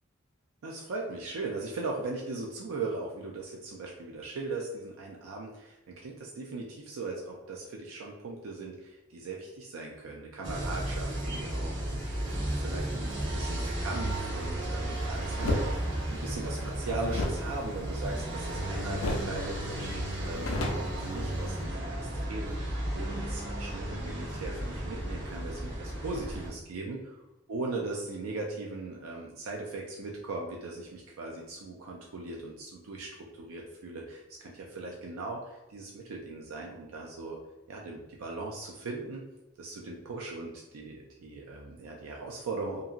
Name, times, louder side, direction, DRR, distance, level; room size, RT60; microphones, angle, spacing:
voice 1, 0.6-22.6 22.9-27.0 27.5-37.4 37.7-39.2 39.6-42.8, right 3 dB, 90° right, -1 dB, 0.4 m, -39 dB
sound 1, 10.4-26.5, right 1 dB, 60° right, 0.8 m, -34 dB
sound 2, 15.4-15.7 17.1-18.6 19.0-19.4 19.7-19.8 20.1-21.6, left 1 dB, 80° left, 0.5 m, -32 dB
2.8 x 2.6 x 2.4 m, 1.0 s
head